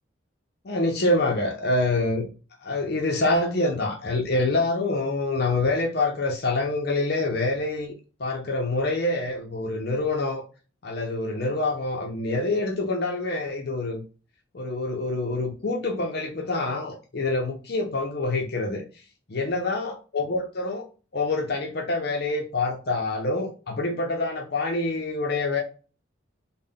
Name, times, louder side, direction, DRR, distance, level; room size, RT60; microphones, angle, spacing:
voice 1, 0.6-2.3 2.6-7.9 8.2-10.4 10.8-14.0 14.5-18.8 19.3-20.9 21.1-25.6, left 2 dB, 50° left, 0.6 m, -26 dB
3.6 x 2.1 x 3.6 m
head